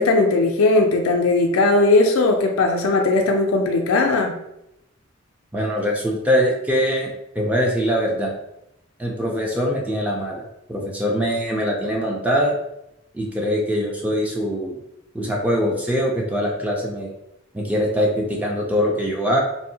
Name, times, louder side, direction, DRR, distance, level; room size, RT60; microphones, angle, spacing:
voice 1, 0.0-4.3, left 2 dB, 85° left, 2 dB, 0.4 m, -18 dB
voice 2, 5.5-8.3 9.0-10.4 10.7-12.6 13.1-14.8 15.1-17.1 17.5-19.4, equal, 5° right, -1 dB, 0.3 m, -22 dB
2.6 x 2.0 x 2.7 m, 0.84 s
head